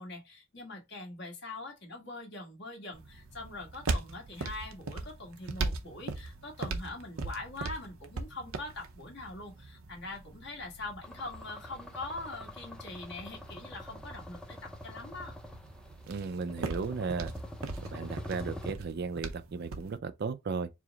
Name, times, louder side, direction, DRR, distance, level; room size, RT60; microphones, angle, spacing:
voice 1, 0.0-14.6 14.8-15.3, left 2 dB, 60° left, 1.4 m, -43 dB
sound 1, 2.9-20.0, right 3 dB, 90° right, 0.7 m, -40 dB
sound 2, 11.0-18.7, left 1 dB, 5° left, 0.5 m, -45 dB
voice 2, 16.1-17.3 17.8-20.7, right 4 dB, 50° right, 0.4 m, -35 dB
4.8 x 2.0 x 3.9 m
head